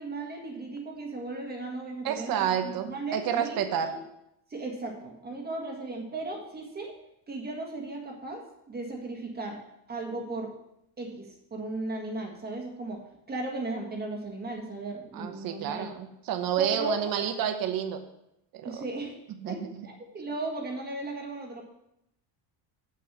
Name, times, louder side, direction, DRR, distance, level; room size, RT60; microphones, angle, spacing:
voice 1, 0.0-4.0 4.5-6.9 7.3-9.6 9.9-10.5 11.0-13.0 13.3-16.0 16.6-17.1 18.6-19.2 19.5-21.6, right 2 dB, 20° right, 1 dB, 1.6 m, -36 dB
voice 2, 2.0-3.9 15.1-18.0 18.5-18.7 19.4-19.9, right 9 dB, 50° right, 6 dB, 1.1 m, -29 dB
7.6 x 6.6 x 7.3 m, 0.81 s
cardioid pair, 155°, 44 cm